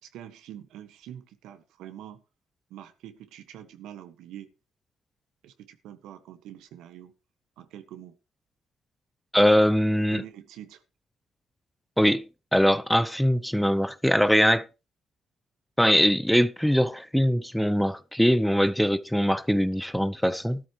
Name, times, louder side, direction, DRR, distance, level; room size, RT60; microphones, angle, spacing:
voice 1, 0.0-2.2 2.7-4.5 5.4-7.1 7.6-8.2 9.4-9.5 10.0-10.8, right 11 dB, 90° right, 1.6 m, -45 dB
voice 2, 9.3-10.2 12.0-12.2 12.5-14.7 15.8-20.6, equal, ahead, 0.8 m, -22 dB
13.5 x 13.0 x 3.2 m
cardioid pair, 90°, 0 cm